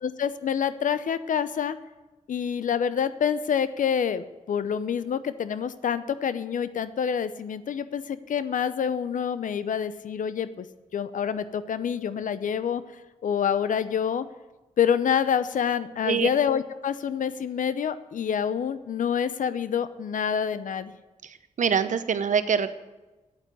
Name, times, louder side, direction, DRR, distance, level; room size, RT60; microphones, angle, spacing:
voice 1, 0.0-1.8 2.3-10.7 10.9-12.8 13.2-14.3 14.8-20.9, left 8 dB, 75° left, 13 dB, 0.7 m, -27 dB
voice 2, 21.2-22.7, right 7 dB, 70° right, 12 dB, 0.8 m, -25 dB
9.0 x 8.7 x 9.6 m, 1.1 s
cardioid pair, 50°, 13 cm